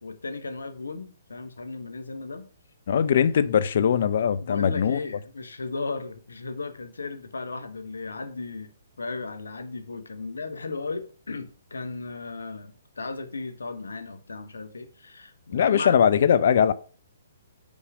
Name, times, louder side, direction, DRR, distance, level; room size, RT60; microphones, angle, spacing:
voice 1, 0.0-2.5 4.4-8.7 9.0-16.0, left 3 dB, 80° left, 1.1 m, -35 dB
voice 2, 2.9-5.0 15.5-16.7, left 8 dB, 60° left, 0.6 m, -21 dB
5.3 x 4.9 x 6.1 m
hypercardioid pair, 135°, 0 cm